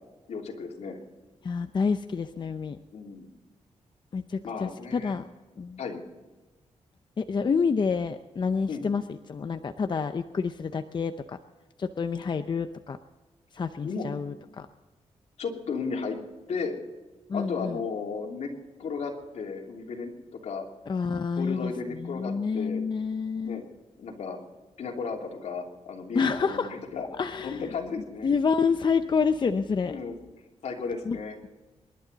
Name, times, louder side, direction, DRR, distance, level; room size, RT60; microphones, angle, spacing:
voice 1, 0.3-1.0 2.9-3.3 4.4-5.1 5.8-6.0 8.7-8.9 13.8-14.1 15.4-16.2 16.5-16.8 17.3-18.5 18.8-20.6 21.4-22.8 23.4-23.6 24.0-24.4 24.8-28.3 29.9-30.2 30.6-31.3, left 5 dB, 75° left, 0 dB, 3.1 m, -34 dB
voice 2, 1.4-2.8 4.1-5.3 5.6-5.8 7.2-9.0 9.3-11.4 11.8-13.0 13.5-14.7 17.3-17.8 20.9-23.6 26.1-26.7 27.2-27.7 28.2-29.9 31.1-31.2, left 5 dB, 40° left, 8 dB, 0.6 m, -28 dB
27.0 x 11.5 x 4.0 m, 1.3 s
wide cardioid pair, 115°, 12 cm